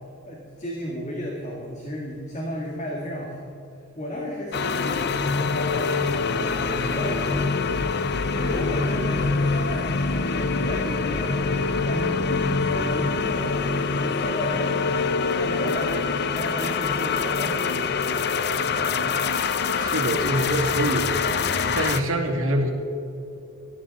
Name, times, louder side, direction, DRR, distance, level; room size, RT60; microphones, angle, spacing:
voice 1, 0.3-3.5 4.0-11.4 11.8-13.6 13.9-19.2, equal, 35° left, -2 dB, 2.1 m, -33 dB
sound 1, 4.5-22.0, left 4 dB, 50° left, 0.6 m, -25 dB
voice 2, 19.7-21.4 21.7-22.7, right 1 dB, 65° right, 1 dB, 2.5 m, -25 dB
18.5 x 14.0 x 4.2 m, 2.8 s
head